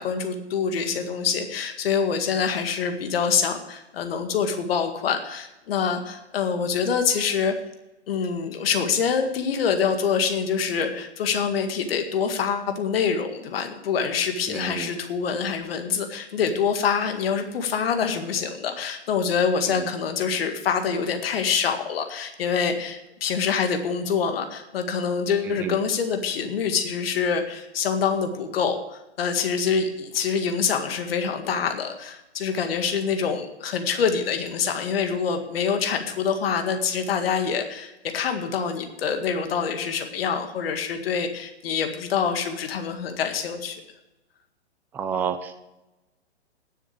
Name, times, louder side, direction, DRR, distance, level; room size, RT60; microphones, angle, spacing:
voice 1, 0.0-7.5 8.1-43.8, left 6 dB, 55° left, 6 dB, 2.0 m, -25 dB
voice 2, 14.5-14.9 19.7-19.9 25.5-25.7 44.9-45.6, right 7 dB, 5° right, 9 dB, 0.4 m, -30 dB
10.0 x 7.2 x 8.3 m, 0.98 s
hypercardioid pair, 130°, 34 cm